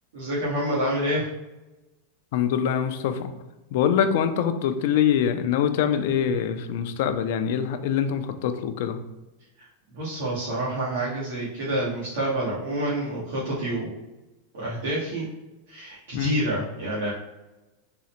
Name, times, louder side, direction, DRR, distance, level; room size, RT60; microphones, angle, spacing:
voice 1, 0.1-1.3 9.9-13.9 14.5-15.3 15.7-17.1, right 1 dB, 80° right, -8 dB, 1.2 m, -28 dB
voice 2, 2.3-3.3 3.7-9.0 16.1-16.4, left 8 dB, 60° left, 9 dB, 0.4 m, -24 dB
3.8 x 2.1 x 4.2 m, 1.1 s
supercardioid pair, 145°, 0 cm